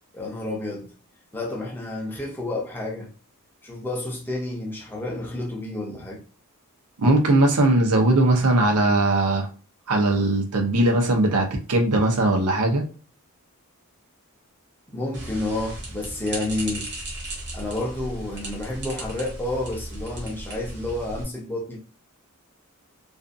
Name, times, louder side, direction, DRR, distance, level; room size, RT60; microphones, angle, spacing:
voice 1, 0.1-0.9 1.3-3.1 3.6-6.2 14.9-16.9 17.5-21.8, left 2 dB, 10° left, 0.5 m, -30 dB
voice 2, 7.0-9.5 9.9-12.8, right 2 dB, 75° right, 0.6 m, -19 dB
sound 1, 15.1-21.2, right 1 dB, 50° right, 1.0 m, -36 dB
2.5 x 2.4 x 2.5 m
head